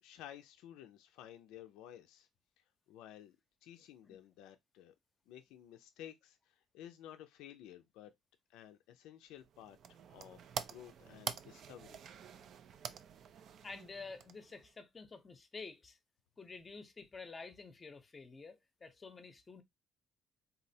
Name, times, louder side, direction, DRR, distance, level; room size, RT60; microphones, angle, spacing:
voice 1, 0.0-2.3 2.9-3.4 3.6-4.9 5.3-8.1 8.5-12.0, left 11 dB, 90° left, 0.3 m, -54 dB
sound 1, 9.4-14.7, right 8 dB, 60° right, 0.3 m, -47 dB
voice 2, 13.6-16.0 16.4-19.6, left 4 dB, 30° left, 0.6 m, -50 dB
3.8 x 2.0 x 2.7 m
cardioid pair, 100°, 0 cm